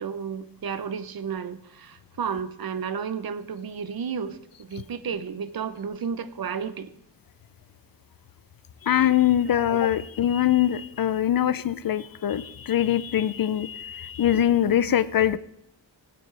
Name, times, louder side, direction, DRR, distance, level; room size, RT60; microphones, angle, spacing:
voice 1, 0.0-6.9 9.6-9.7, right 6 dB, 55° right, 13 dB, 0.7 m, -32 dB
voice 2, 8.8-15.4, left 11 dB, 55° left, 16 dB, 0.5 m, -23 dB
18.0 x 7.9 x 3.3 m, 0.75 s
wide cardioid pair, 130°, 44 cm